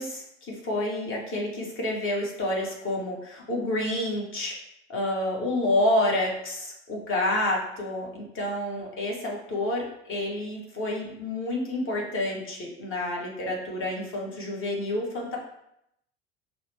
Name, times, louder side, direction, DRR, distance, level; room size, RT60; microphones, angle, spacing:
voice 1, 0.0-4.5 4.9-15.4, left 1 dB, 40° left, -1 dB, 1.5 m, -29 dB
5.2 x 2.2 x 3.4 m, 0.78 s
hypercardioid pair, 70°, 33 cm